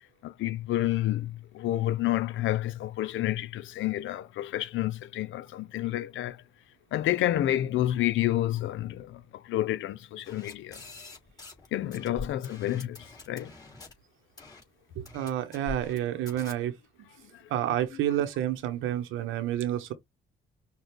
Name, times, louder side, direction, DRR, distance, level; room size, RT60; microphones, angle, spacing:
voice 1, 0.2-6.4 6.9-10.8 11.7-13.0 13.3-13.5, left 14 dB, 75° left, 0.6 m, -29 dB
sound 1, 10.2-11.7 11.9-13.9 14.4-14.6 15.1-16.0 16.3-16.5, left 3 dB, 20° left, 2.8 m, -44 dB
voice 2, 15.0-16.7 17.5-19.9, right 12 dB, 90° right, 0.9 m, -29 dB
6.0 x 2.4 x 3.3 m
cardioid pair, 90°, 20 cm